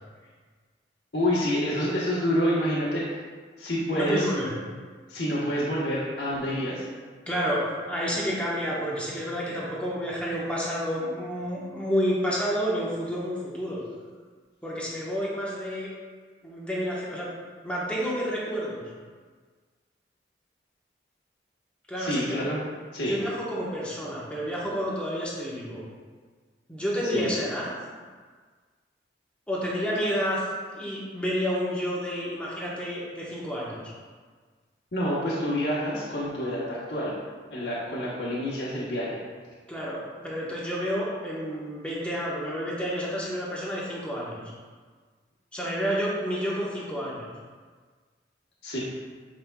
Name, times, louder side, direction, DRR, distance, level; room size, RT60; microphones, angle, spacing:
voice 1, 1.1-3.0 3.6-4.3 5.1-6.8 22.0-22.6 22.9-23.1 27.1-27.3 34.9-37.1 37.5-39.2 48.6-48.8, equal, 75° left, -7 dB, 1.2 m, -27 dB
voice 2, 3.9-4.5 7.3-13.8 14.6-15.9 16.4-17.3 17.6-18.9 21.9-22.4 23.1-25.8 26.7-27.7 29.5-30.5 30.7-33.9 39.7-44.4 45.5-47.3, equal, 5° left, -6 dB, 1.1 m, -30 dB
7.7 x 5.2 x 2.3 m, 1.5 s
head